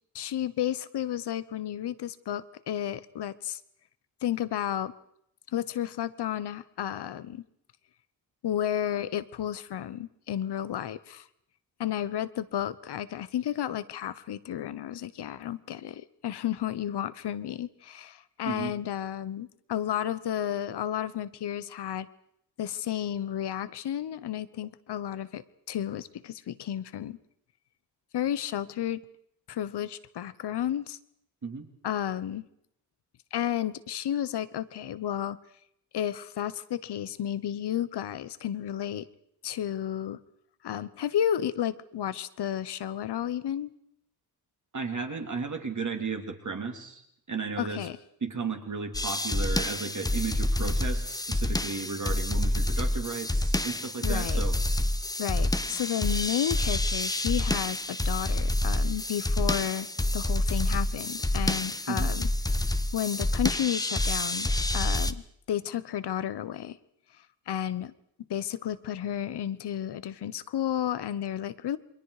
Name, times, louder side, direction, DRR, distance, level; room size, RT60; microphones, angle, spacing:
voice 1, 0.1-3.6 4.2-4.9 5.5-7.4 8.4-11.3 11.8-22.1 22.6-27.2 28.1-29.0 29.5-31.0 31.8-32.4 33.3-35.4 35.9-39.1 39.4-40.2 40.6-43.7 47.6-48.0 54.0-54.4 55.2-59.9 60.1-62.3 62.9-66.8 67.5-67.9 68.3-71.8, left 10 dB, 85° left, 15 dB, 1.0 m, -32 dB
voice 2, 44.7-47.0 47.3-47.9 48.2-54.6 61.9-62.1, right 4 dB, 50° right, 5 dB, 3.1 m, -34 dB
sound 1, 48.9-65.1, left 1 dB, 10° left, 0.9 m, -28 dB
28.0 x 22.5 x 4.9 m, 0.73 s
cardioid pair, 85°, 39 cm